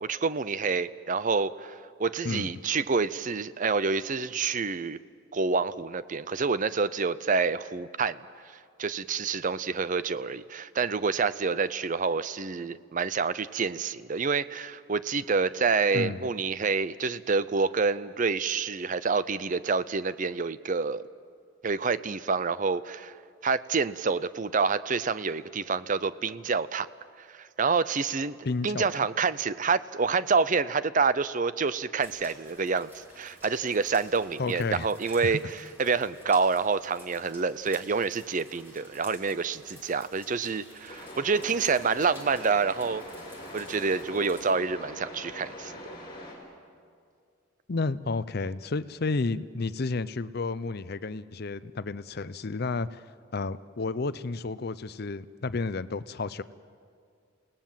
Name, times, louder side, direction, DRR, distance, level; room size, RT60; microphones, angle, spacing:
voice 1, 0.0-5.0 5.3-8.2 8.8-21.0 21.6-23.1 23.4-26.9 27.2-28.4 28.6-35.4 35.8-43.0 43.5-45.7, right 4 dB, 40° right, 16 dB, 0.6 m, -27 dB
voice 2, 15.9-16.3 28.4-29.0 34.4-34.9 35.2-35.4 47.7-53.0 53.3-56.4, left 3 dB, 50° left, 16 dB, 0.6 m, -31 dB
sound 1, 32.0-44.5, equal, 10° right, 3.9 m, -52 dB
sound 2, 40.9-46.4, left 1 dB, 25° left, 4.8 m, -43 dB
28.5 x 18.5 x 7.4 m, 2.2 s
head